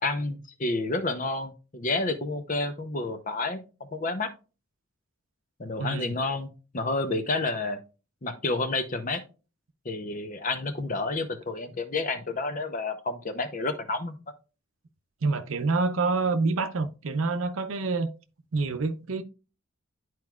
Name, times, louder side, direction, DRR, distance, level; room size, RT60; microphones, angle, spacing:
voice 1, 0.0-4.3 5.6-7.8 8.2-9.2 9.8-14.2, left 3 dB, 40° left, 0.7 m, -30 dB
voice 2, 5.8-6.2 15.2-18.1 18.5-19.2, right 3 dB, 80° right, 0.6 m, -27 dB
11.0 x 4.6 x 2.4 m
head